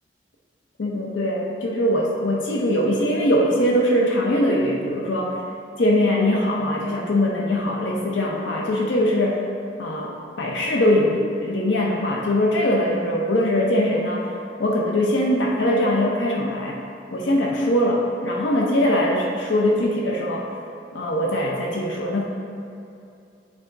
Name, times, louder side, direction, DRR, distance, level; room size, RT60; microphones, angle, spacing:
voice 1, 0.8-5.3 5.8-9.4 9.8-14.3 14.6-16.8 17.1-20.5 20.9-22.2, left 1 dB, 85° left, -1 dB, 0.7 m, -21 dB
8.1 x 3.6 x 3.9 m, 2.6 s
head